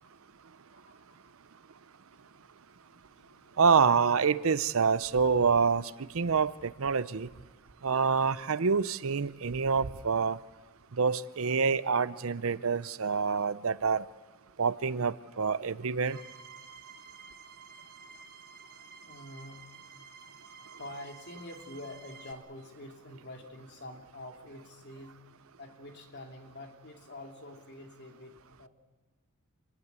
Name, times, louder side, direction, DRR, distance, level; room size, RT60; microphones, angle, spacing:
voice 1, 0.0-0.4 0.7-1.3 1.8-2.4 2.8-3.6 16.9-17.1 18.6-19.9 20.2-25.2 25.6-28.7, left 1 dB, 55° left, 3 dB, 2.8 m, -48 dB
voice 2, 3.6-7.3 7.8-10.4 11.0-14.0 14.6-16.2, right 5 dB, 70° right, 16 dB, 0.7 m, -27 dB
sound 1, 16.0-22.3, right 5 dB, 45° right, 1.4 m, -51 dB
26.5 x 19.5 x 8.2 m, 1.4 s
head